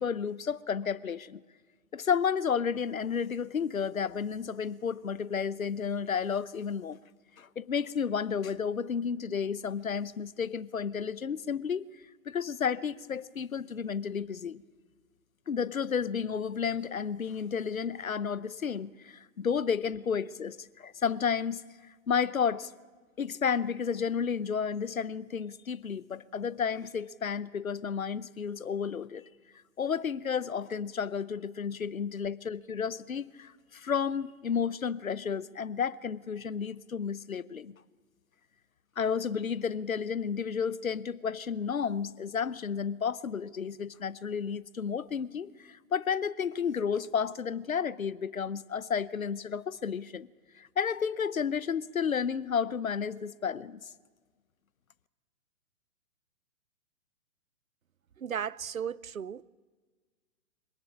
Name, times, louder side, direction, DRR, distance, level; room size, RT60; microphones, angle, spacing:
voice 1, 0.0-1.4 1.9-7.0 7.4-11.9 12.3-14.6 15.5-21.6 22.1-22.7 23.2-29.3 29.8-37.7 39.0-50.3 50.5-53.9, left 6 dB, 85° left, 0.9 m, -32 dB
voice 2, 58.2-59.4, right 8 dB, 90° right, 0.7 m, -35 dB
25.0 x 18.0 x 8.5 m
figure-of-eight pair, 120°, 40 cm